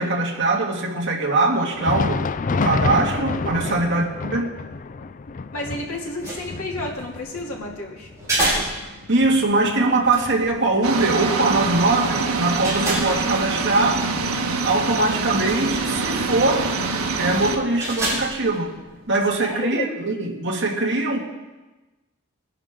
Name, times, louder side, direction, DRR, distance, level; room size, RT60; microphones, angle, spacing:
voice 1, 0.0-2.2 2.5-4.5 9.1-14.1 14.6-16.8 17.2-18.7 19.1-21.2, right 2 dB, 55° right, 0 dB, 2.1 m, -22 dB
Thunder, 1.6-11.1 11.4-11.6 12.3-12.4 13.4-13.5, left 4 dB, 35° left, 0.4 m, -29 dB
voice 2, 5.5-8.1 19.4-19.9, left 2 dB, 90° left, -2 dB, 2.8 m, -31 dB
sound 1, 6.0-19.5, right 1 dB, 15° right, 5.1 m, -32 dB
sound 2, 10.8-17.6, right 4 dB, 80° right, 1.4 m, -25 dB
21.0 x 11.0 x 3.7 m, 1.1 s
head